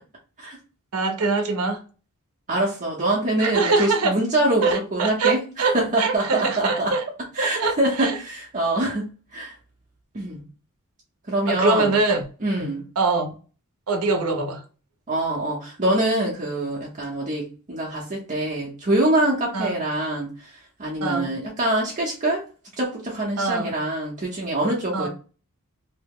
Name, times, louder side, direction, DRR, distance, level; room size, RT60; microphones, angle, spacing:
voice 1, 0.9-1.8 3.4-4.1 4.6-7.0 7.4-8.2 11.5-12.2 12.6-13.3 13.9-14.6 19.5-19.8 21.0-21.3 23.4-23.7 24.9-25.1, right 3 dB, 70° right, 0.7 m, -23 dB
voice 2, 2.5-6.9 7.3-9.5 10.1-10.4 11.3-11.9 12.4-12.9 15.1-22.4 22.8-25.1, right 1 dB, 35° right, 0.7 m, -24 dB
2.8 x 2.0 x 3.6 m
head